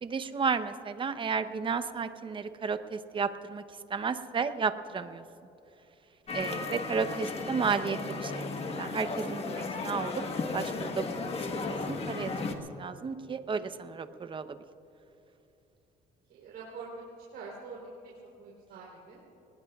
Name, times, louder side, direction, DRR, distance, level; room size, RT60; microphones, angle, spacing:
voice 1, 0.0-3.6 3.9-5.2 6.3-10.2 10.5-14.6, right 5 dB, 30° right, 10 dB, 0.8 m, -33 dB
sound 1, 6.3-12.6, left 3 dB, 35° left, 1.4 m, -35 dB
voice 2, 16.3-17.0 17.3-18.1 18.4-19.2, right 4 dB, 75° right, -4 dB, 3.7 m, -45 dB
24.0 x 19.5 x 2.4 m, 3.0 s
cardioid pair, 110°, 17 cm